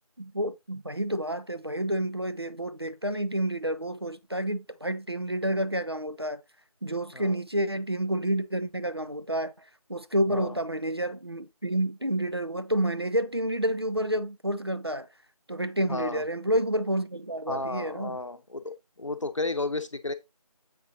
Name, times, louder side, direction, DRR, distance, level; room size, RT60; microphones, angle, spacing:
voice 1, 0.2-6.4 6.8-15.1 15.5-18.2, right 1 dB, 40° right, 0.4 m, -29 dB
voice 2, 15.8-16.2 17.5-20.1, left 2 dB, 55° left, 0.8 m, -33 dB
7.5 x 5.3 x 2.6 m
figure-of-eight pair, 170°, 19 cm